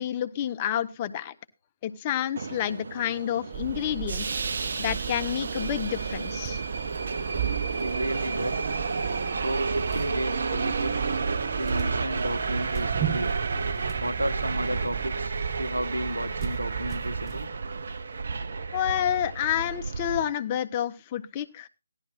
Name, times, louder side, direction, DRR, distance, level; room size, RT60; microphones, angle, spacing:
voice 1, 0.0-1.3 1.8-4.3 4.8-6.6 18.7-21.7, left 10 dB, 25° left, 12 dB, 0.7 m, -29 dB
Subway metro underground, 2.4-20.3, right 4 dB, 50° right, 0.8 m, -31 dB
sound 1, 3.5-17.5, right 11 dB, 15° right, 0.7 m, -36 dB
voice 2, 7.8-8.9 9.3-11.0 11.5-13.3 14.0-17.5, right 1 dB, 80° right, 9 dB, 1.2 m, -33 dB
16.0 x 11.5 x 2.5 m, 0.24 s
figure-of-eight pair, 145°, 0 cm